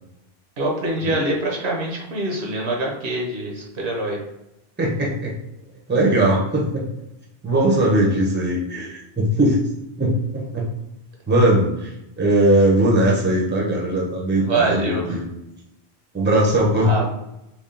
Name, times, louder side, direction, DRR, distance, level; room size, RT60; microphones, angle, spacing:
voice 1, 0.6-4.2 14.4-15.2 16.8-17.1, right 2 dB, 80° right, -1 dB, 1.2 m, -24 dB
voice 2, 4.8-5.4 5.9-6.8 7.4-9.7 10.0-10.7 11.3-15.2 16.1-17.1, right 1 dB, 10° right, -3 dB, 0.6 m, -19 dB
3.5 x 2.4 x 3.7 m, 0.90 s
omnidirectional pair, 1.1 m